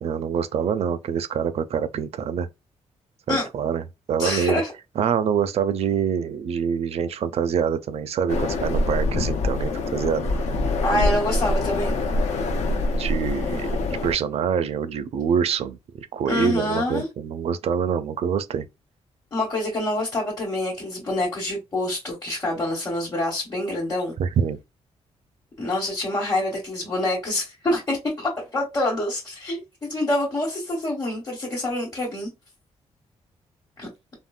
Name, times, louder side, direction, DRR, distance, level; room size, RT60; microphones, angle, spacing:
voice 1, 0.0-2.5 3.3-3.8 4.1-4.6 5.0-10.3 10.9-11.2 12.6-18.7 24.2-24.6, right 7 dB, 60° right, 0.4 m, -25 dB
voice 2, 4.2-4.7 10.8-12.0 16.3-17.1 19.3-24.2 25.6-32.3 33.8-33.9, left 1 dB, 30° left, 1.0 m, -26 dB
sound 1, 8.3-14.1, left 2 dB, 75° left, 0.5 m, -25 dB
3.6 x 2.0 x 2.3 m
cardioid pair, 110°, 12 cm